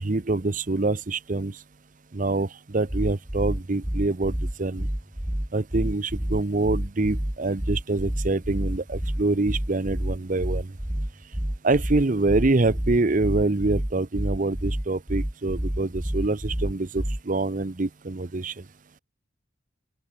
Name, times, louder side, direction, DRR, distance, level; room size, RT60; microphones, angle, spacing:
voice 1, 0.0-1.5 2.1-4.9 5.5-10.7 11.6-18.5, right 2 dB, 45° right, 0.8 m, -25 dB
sound 1, 2.9-17.4, equal, 5° right, 0.5 m, -29 dB
open air
head